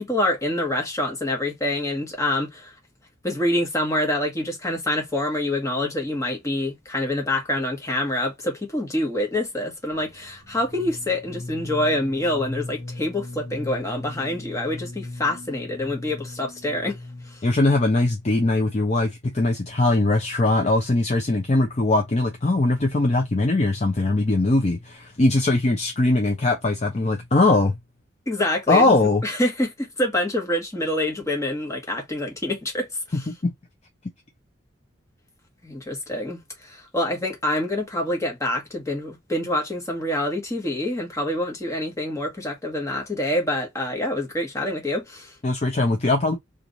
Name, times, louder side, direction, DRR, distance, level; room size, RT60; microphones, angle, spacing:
voice 1, 0.0-2.7 3.2-17.0 17.2-17.4 28.3-29.0 29.2-33.3 35.6-45.3, left 1 dB, 15° left, 1.2 m, -26 dB
sound 1, 9.9-17.6, left 2 dB, 75° left, 1.4 m, -38 dB
voice 2, 17.4-27.8 28.7-29.2 33.4-33.5 45.4-46.4, left 2 dB, 35° left, 0.6 m, -21 dB
3.0 x 2.5 x 3.8 m
head